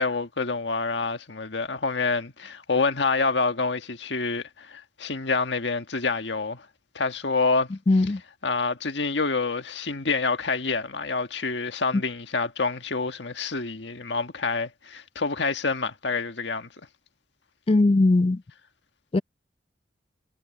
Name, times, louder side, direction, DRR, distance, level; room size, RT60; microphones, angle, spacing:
voice 1, 0.0-6.6 6.9-7.7 8.4-16.7, left 4 dB, 80° left, 1.6 m, -27 dB
voice 2, 7.9-8.2 17.7-18.4 19.1-19.2, left 2 dB, 30° left, 0.4 m, -19 dB
head